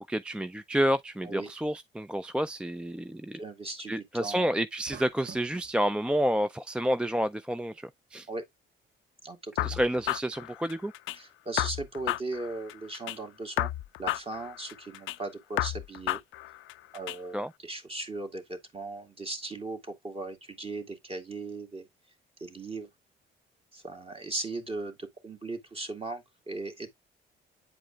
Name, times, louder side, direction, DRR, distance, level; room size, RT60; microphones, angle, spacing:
voice 1, 0.1-3.4 3.9-8.3 9.6-10.9 17.3-17.5, equal, 5° right, 0.3 m, -29 dB
voice 2, 3.3-4.5 8.3-8.4 9.2-9.8 11.1-13.7 14.0-16.2 16.9-21.9 22.4-22.9 23.7-26.9, right 2 dB, 30° right, 2.1 m, -38 dB
sound 1, 4.9-5.7, right 7 dB, 45° right, 0.8 m, -47 dB
sound 2, 9.6-11.2 11.6-13.2 13.6-15.2 15.6-17.2, left 16 dB, 80° left, 0.4 m, -32 dB
8.7 x 4.9 x 2.3 m
cardioid pair, 90°, 20 cm